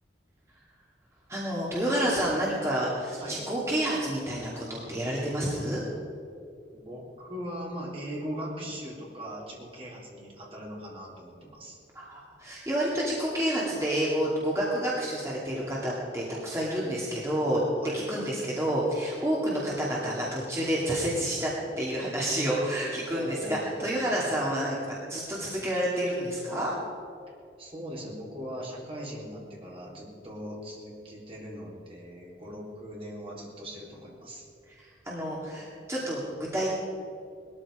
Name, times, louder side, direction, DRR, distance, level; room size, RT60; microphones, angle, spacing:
voice 1, 1.3-5.8 11.9-17.6 17.9-21.5 21.8-26.7 34.8-36.8, right 1 dB, 15° right, -6 dB, 2.5 m, -29 dB
voice 2, 6.7-11.8 17.8-18.0 23.1-24.4 27.6-34.4, equal, 30° right, -4 dB, 4.0 m, -40 dB
19.5 x 13.5 x 5.0 m, 2.5 s
head